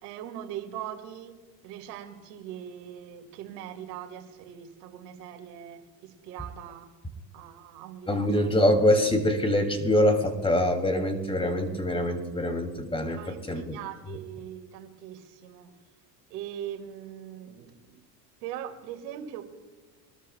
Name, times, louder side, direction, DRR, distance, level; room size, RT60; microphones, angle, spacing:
voice 1, 0.0-1.4 1.6-6.9 7.3-8.5 13.2-15.7 16.3-18.0 18.4-19.4, right 10 dB, 75° right, 6 dB, 2.3 m, -41 dB
voice 2, 8.1-13.8, left 1 dB, 10° left, 6 dB, 2.6 m, -24 dB
24.5 x 13.0 x 2.3 m, 1.3 s
hypercardioid pair, 90°, 49 cm